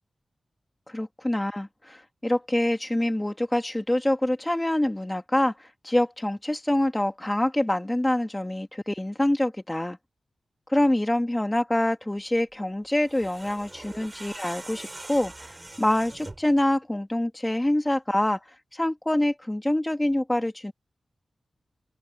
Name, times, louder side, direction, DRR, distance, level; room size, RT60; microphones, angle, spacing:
voice 1, 0.9-10.0 10.7-18.4 18.7-20.7, left 1 dB, 15° left, 2.7 m, -26 dB
sound 1, 12.9-16.6, right 2 dB, 25° right, 6.2 m, -42 dB
wide cardioid pair, 105°, 0 cm